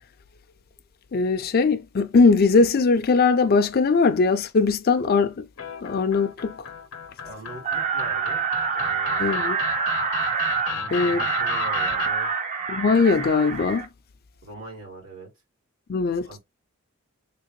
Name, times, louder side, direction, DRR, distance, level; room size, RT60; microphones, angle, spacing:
voice 1, 1.1-5.4 5.8-6.5 9.2-9.6 10.9-11.2 12.7-13.9 15.9-16.3, left 4 dB, 45° left, 0.4 m, -20 dB
sound 1, 5.6-12.1, left 5 dB, 80° left, 0.8 m, -33 dB
voice 2, 7.2-8.4 8.7-9.5 10.7-12.3 14.4-15.3 16.2-16.4, right 2 dB, 80° right, 2.3 m, -42 dB
sound 2, 7.6-13.9, right 6 dB, 35° right, 0.6 m, -26 dB
3.7 x 2.5 x 3.0 m
head